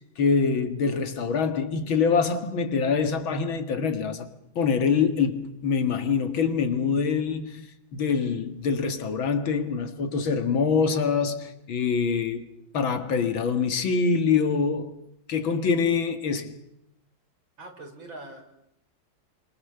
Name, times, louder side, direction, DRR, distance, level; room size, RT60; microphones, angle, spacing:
voice 1, 0.0-4.3 4.6-7.7 7.9-12.5 12.7-15.0 15.3-16.5, left 5 dB, 90° left, 2.6 m, -25 dB
voice 2, 17.6-18.4, right 2 dB, 80° right, 5.3 m, -42 dB
29.0 x 26.0 x 6.8 m
omnidirectional pair, 2.1 m